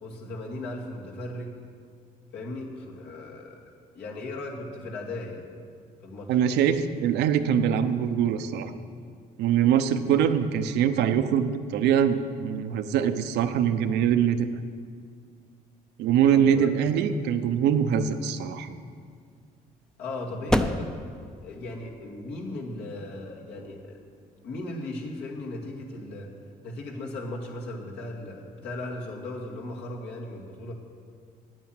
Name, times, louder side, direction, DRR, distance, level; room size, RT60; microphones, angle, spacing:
voice 1, 0.0-1.5 2.3-3.6 3.9-5.5 6.0-6.4 16.3-16.7 20.0-20.9 21.4-24.1 24.4-26.3 26.6-30.7, left 2 dB, 75° left, -1 dB, 2.3 m, -37 dB
voice 2, 6.3-8.7 9.4-14.5 16.0-18.8, right 8 dB, 85° right, 9 dB, 0.8 m, -23 dB
sound 1, 18.2-25.2, left 1 dB, 5° left, 0.5 m, -34 dB
9.5 x 9.0 x 9.0 m, 2.1 s
cardioid pair, 110°, 17 cm